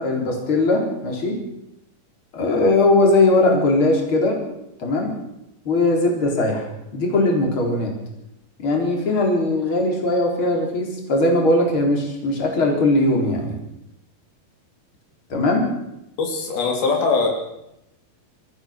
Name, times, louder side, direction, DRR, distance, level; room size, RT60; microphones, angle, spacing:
voice 1, 0.0-1.4 2.3-4.4 4.8-5.1 5.6-7.9 8.6-13.5 15.3-15.7, left 2 dB, 35° left, 1 dB, 4.7 m, -19 dB
voice 2, 16.2-17.3, left 4 dB, 85° left, 2 dB, 5.1 m, -21 dB
27.0 x 14.5 x 6.6 m, 0.85 s
omnidirectional pair, 4.2 m